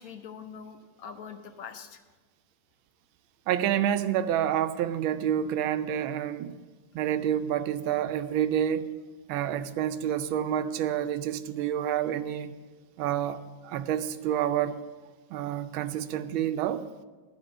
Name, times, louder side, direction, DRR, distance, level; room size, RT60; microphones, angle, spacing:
voice 1, 0.0-2.0, left 6 dB, 60° left, 1.1 m, -43 dB
voice 2, 3.5-6.5 6.9-8.9 9.3-12.5 13.0-14.8 15.3-16.9, right 10 dB, 85° right, 1.4 m, -28 dB
12.0 x 4.8 x 7.7 m
omnidirectional pair, 2.2 m